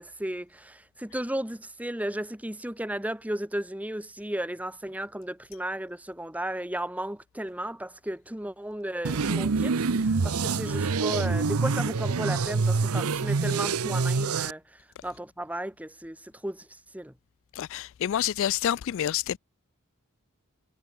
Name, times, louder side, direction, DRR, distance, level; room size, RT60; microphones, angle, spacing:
voice 1, 0.0-14.6 15.0-16.6 16.9-17.1, right 1 dB, 5° right, 1.5 m, -34 dB
sound 1, 9.0-14.5, right 4 dB, 85° right, 0.8 m, -26 dB
voice 2, 17.6-19.4, left 10 dB, 65° left, 0.3 m, -28 dB
head